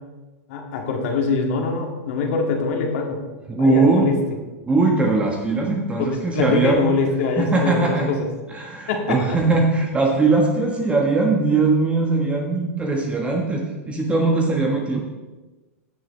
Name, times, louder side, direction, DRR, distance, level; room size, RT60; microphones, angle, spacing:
voice 1, 0.5-3.2 3.6-4.2 6.3-8.3 8.9-9.4, left 4 dB, 60° left, 2 dB, 2.2 m, -23 dB
voice 2, 3.5-4.1 4.7-7.0 7.4-8.1 8.5-15.0, right 3 dB, 15° right, 0 dB, 1.4 m, -20 dB
16.5 x 6.4 x 3.3 m, 1.2 s
hypercardioid pair, 120°, 8 cm